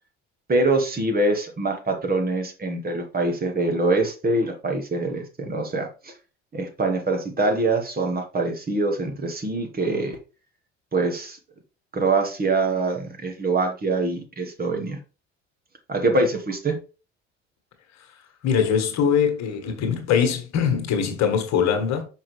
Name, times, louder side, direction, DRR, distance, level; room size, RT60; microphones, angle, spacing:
voice 1, 0.5-6.1 6.5-10.2 10.9-11.4 11.9-15.0 15.9-16.8, right 2 dB, 25° right, 1.5 m, -24 dB
voice 2, 18.4-22.0, left 7 dB, 50° left, 1.5 m, -22 dB
5.5 x 5.2 x 3.3 m
figure-of-eight pair, 55°, 34 cm